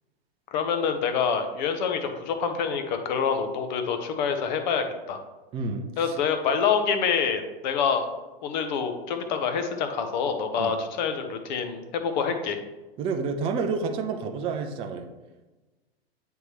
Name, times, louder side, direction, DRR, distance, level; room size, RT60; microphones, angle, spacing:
voice 1, 0.5-5.2 6.0-8.1 8.4-12.6, left 6 dB, 45° left, 7 dB, 0.9 m, -26 dB
voice 2, 5.5-6.2 10.6-10.7 13.0-15.1, right 4 dB, 20° right, 4 dB, 0.4 m, -29 dB
9.1 x 3.6 x 3.0 m, 1.1 s
figure-of-eight pair, 95°, 31 cm